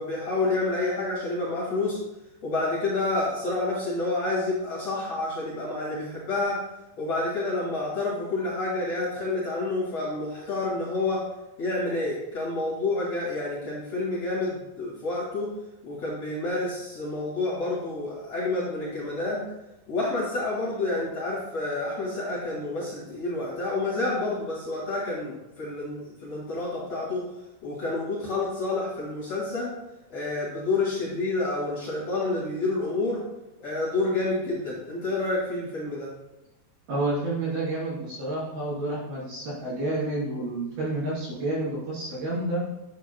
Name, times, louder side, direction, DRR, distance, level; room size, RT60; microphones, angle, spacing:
voice 1, 0.0-2.0 2.4-6.5 7.0-11.2 11.6-15.5 15.8-19.4 19.9-27.2 27.6-29.7 30.1-33.2 33.6-36.1, left 2 dB, 45° left, -6 dB, 2.5 m, -29 dB
voice 2, 36.9-42.6, right 2 dB, 65° right, -7 dB, 5.3 m, -29 dB
10.0 x 9.2 x 2.3 m, 0.97 s
omnidirectional pair, 4.8 m